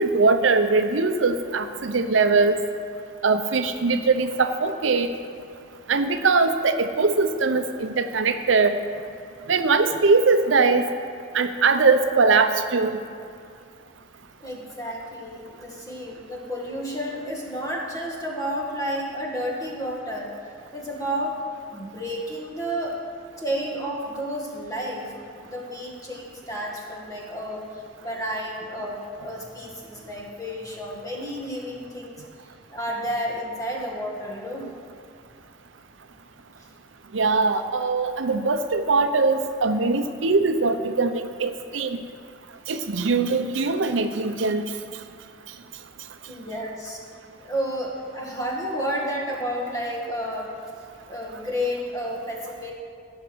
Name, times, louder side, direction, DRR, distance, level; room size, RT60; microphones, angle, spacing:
voice 1, 0.0-2.6 3.2-5.1 5.9-8.8 9.5-10.9 11.3-13.0 34.6-34.7 37.1-42.0 42.7-44.6, right 4 dB, 85° right, 8 dB, 0.7 m, -21 dB
voice 2, 14.4-20.3 20.7-21.4 21.7-23.0 23.4-25.1 25.4-32.2 32.7-34.6 46.3-47.0 47.4-50.5 51.1-52.7, equal, 20° left, -2 dB, 1.7 m, -31 dB
15.5 x 6.0 x 6.2 m, 2.4 s
head